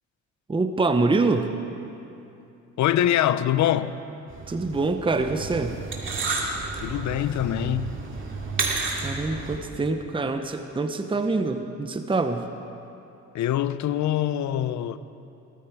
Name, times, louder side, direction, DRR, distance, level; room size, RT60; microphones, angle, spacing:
voice 1, 0.5-1.5 4.5-5.8 9.0-12.5, right 3 dB, 15° right, 0.8 m, -25 dB
voice 2, 2.8-4.0 6.8-7.9 13.3-15.0, left 11 dB, 70° left, 0.6 m, -24 dB
sound 1, 4.3-9.6, right 3 dB, 40° right, 2.3 m, -31 dB
17.5 x 14.0 x 4.7 m
cardioid pair, 90°, 30 cm